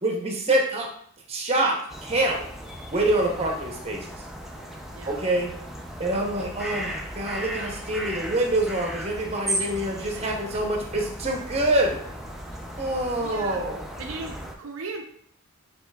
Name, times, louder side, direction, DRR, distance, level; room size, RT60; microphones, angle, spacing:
voice 1, 0.0-0.9 1.3-2.4 2.9-4.2 5.0-5.5 6.0-12.0 12.8-13.8, right 1 dB, 30° right, 1 dB, 0.7 m, -26 dB
sound 1, 1.9-14.5, right 1 dB, ahead, 0.4 m, -36 dB
voice 2, 3.2-3.6 4.9-5.3 9.6-9.7 12.7-12.8 13.2-13.6 14.0-15.1, right 4 dB, 65° right, 2 dB, 0.5 m, -38 dB
7.9 x 2.9 x 2.2 m, 0.64 s
head